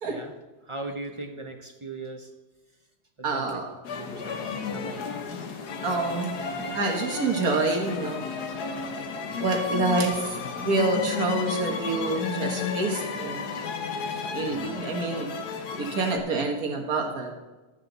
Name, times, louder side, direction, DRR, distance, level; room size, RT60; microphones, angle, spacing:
voice 1, 0.7-2.3 3.2-3.6 4.0-5.0, right 2 dB, 40° right, 4 dB, 0.4 m, -38 dB
voice 2, 3.2-3.7 5.8-6.3 6.6-8.2 9.4-10.4 10.6-13.4 14.3-15.3 15.8-17.3, right 3 dB, 65° right, 2 dB, 2.0 m, -27 dB
sound 1, 3.8-16.2, left 5 dB, 75° left, 1.6 m, -33 dB
12.0 x 8.6 x 4.0 m, 1.2 s
omnidirectional pair, 1.7 m